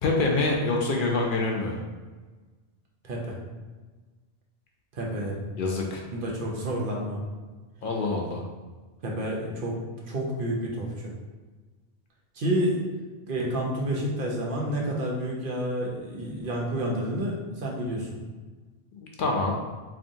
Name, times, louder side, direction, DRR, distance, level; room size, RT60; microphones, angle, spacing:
voice 1, 0.0-1.8 5.6-6.0 7.8-8.4 19.0-19.5, left 3 dB, 60° left, 0 dB, 0.6 m, -26 dB
voice 2, 3.0-3.4 4.9-5.4 6.1-7.2 9.0-9.8 10.1-11.1 12.3-12.8 13.2-18.1, right 1 dB, 60° right, -2 dB, 0.9 m, -29 dB
3.6 x 3.2 x 2.6 m, 1.3 s
omnidirectional pair, 1.1 m